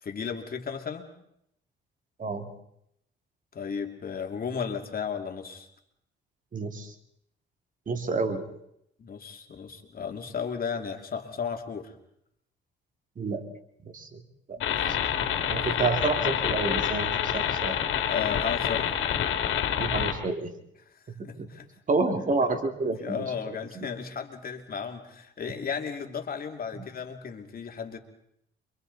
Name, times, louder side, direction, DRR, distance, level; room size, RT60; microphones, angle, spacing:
voice 1, 0.0-1.1 3.5-5.7 8.1-8.2 9.0-11.9 14.6-14.9 15.4-15.6 18.1-19.0 21.2-21.7 23.0-28.0, left 6 dB, 45° left, 4 dB, 2.7 m, -34 dB
voice 2, 2.2-2.5 6.5-6.9 7.9-8.4 13.2-13.4 13.8-14.2 14.5-15.0 15.5-17.8 19.8-20.5 21.2-21.5 21.9-23.9 25.5-25.6 26.8-26.9, right 3 dB, 40° right, 5 dB, 2.7 m, -29 dB
sound 1, 14.6-20.1, left 9 dB, 80° left, 2.5 m, -27 dB
28.5 x 24.5 x 4.1 m, 0.75 s
cardioid pair, 90°, 20 cm